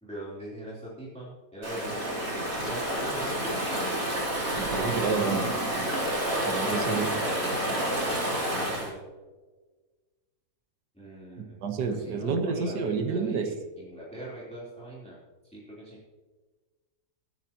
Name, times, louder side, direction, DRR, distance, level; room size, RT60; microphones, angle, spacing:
voice 1, 0.0-2.1 2.6-3.7 7.0-9.0 10.9-11.6 11.9-15.2 15.4-16.0, right 1 dB, 5° left, -7 dB, 3.3 m, -42 dB
Stream / Ocean, 1.6-8.9, right 1 dB, 55° right, 4.1 m, -29 dB
voice 2, 4.6-5.6 6.4-7.1 11.6-13.5, right 5 dB, 90° right, 6 dB, 1.8 m, -29 dB
22.0 x 9.1 x 3.0 m, 1.3 s
omnidirectional pair, 1.7 m